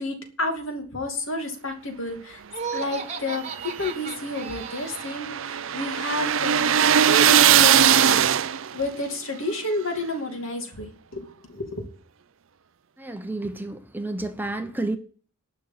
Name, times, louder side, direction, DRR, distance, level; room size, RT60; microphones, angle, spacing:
voice 1, 0.0-2.4 2.7-8.3 8.7-11.9, left 2 dB, 60° left, 2.6 m, -31 dB
Laughter, 2.5-5.3, right 6 dB, 30° right, 1.4 m, -35 dB
sound 1, 3.4-8.8, right 9 dB, 60° right, 0.5 m, -20 dB
voice 2, 13.0-15.0, right 2 dB, 10° right, 0.8 m, -30 dB
12.0 x 6.4 x 7.3 m
head